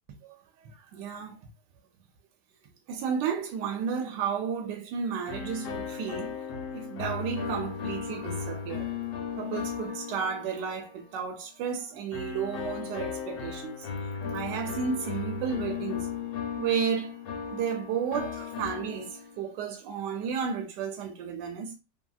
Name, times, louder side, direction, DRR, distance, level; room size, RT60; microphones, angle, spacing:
voice 1, 0.6-1.4 2.9-6.3 6.7-8.9 9.3-14.0 14.3-16.1 16.6-17.2 17.5-21.8, right 7 dB, 85° right, 1.2 m, -32 dB
sound 1, 5.3-11.1 12.1-19.5, left 7 dB, 75° left, 1.1 m, -36 dB
2.7 x 2.7 x 2.3 m
omnidirectional pair, 1.8 m